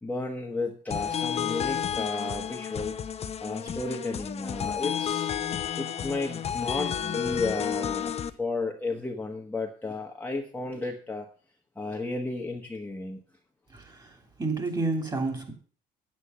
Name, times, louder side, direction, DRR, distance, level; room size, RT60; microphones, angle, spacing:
voice 1, 0.0-3.0 3.4-5.3 5.8-11.3 11.8-13.2, left 3 dB, 10° left, 1.1 m, -33 dB
sound 1, 0.9-8.3, left 8 dB, 40° left, 0.7 m, -31 dB
voice 2, 13.7-15.5, right 3 dB, 25° right, 2.9 m, -30 dB
9.0 x 8.5 x 5.6 m
cardioid pair, 110°, 17 cm